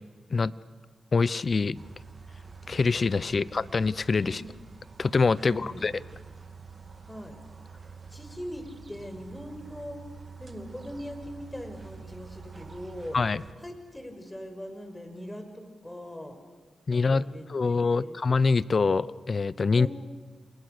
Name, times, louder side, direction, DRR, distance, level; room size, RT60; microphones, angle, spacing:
voice 1, 1.1-1.8 2.7-4.4 5.0-5.9 13.1-13.4 16.9-17.2 17.5-19.9, left 4 dB, 50° left, 19 dB, 0.8 m, -25 dB
sound 1, 1.7-13.5, right 5 dB, 40° right, 2.6 m, -47 dB
voice 2, 5.4-5.9 7.1-7.4 7.8-10.1 10.4-13.2 13.6-16.4 16.9-18.2 19.8-19.9, equal, 15° left, 6 dB, 5.6 m, -41 dB
30.0 x 27.5 x 6.7 m, 1.5 s
cardioid pair, 55°, 0 cm